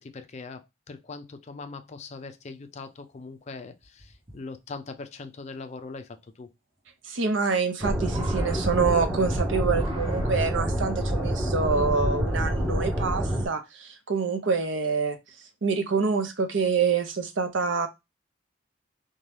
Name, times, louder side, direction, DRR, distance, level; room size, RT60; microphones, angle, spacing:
voice 1, 0.0-6.5, left 4 dB, 35° left, 0.4 m, -41 dB
sound 1, 3.1-3.2 3.8-4.4 5.9-6.0 7.2-7.7 8.0-9.3 9.7-10.7 11.7-11.8, right 2 dB, 25° right, 1.1 m, -46 dB
voice 2, 7.1-15.2 15.6-17.9, right 5 dB, 65° right, 0.6 m, -26 dB
sound 2, 7.8-13.5, equal, 5° right, 0.7 m, -27 dB
2.7 x 2.2 x 3.2 m
head